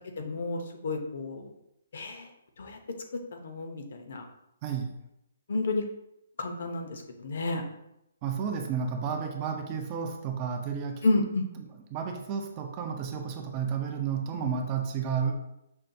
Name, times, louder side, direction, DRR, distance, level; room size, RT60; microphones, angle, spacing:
voice 1, 0.2-1.5 1.9-2.3 2.6-2.8 3.4-4.3 5.5-5.9 6.4-7.6 11.0-11.4, left 2 dB, 60° left, 4 dB, 0.6 m, -30 dB
voice 2, 4.6-5.0 8.2-11.0 11.6-11.7 11.9-15.3, right 6 dB, 25° right, 4 dB, 0.4 m, -32 dB
5.3 x 2.2 x 2.6 m, 0.81 s
hypercardioid pair, 165°, 0 cm